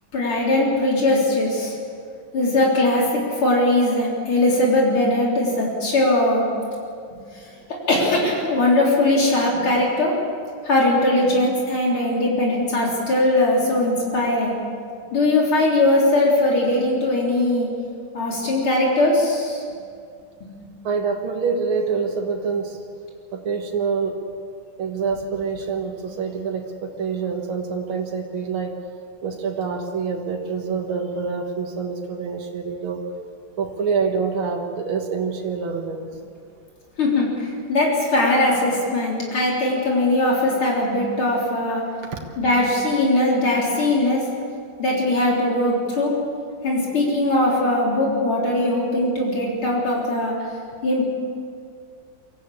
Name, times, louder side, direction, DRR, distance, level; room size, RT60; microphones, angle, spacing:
voice 1, 0.1-1.8 2.3-6.4 7.3-10.1 10.6-14.5 15.1-17.7 18.1-19.6 37.0-41.8 42.4-44.2 44.8-46.1 46.6-50.3 50.8-51.1, left 1 dB, 80° left, -3 dB, 4.7 m, -20 dB
voice 2, 20.8-22.8 23.3-24.2 24.8-28.8 29.2-33.1 33.6-36.1 42.0-42.2, right 5 dB, 75° right, 2 dB, 2.4 m, -26 dB
24.0 x 14.5 x 8.6 m, 2.3 s
omnidirectional pair, 2.3 m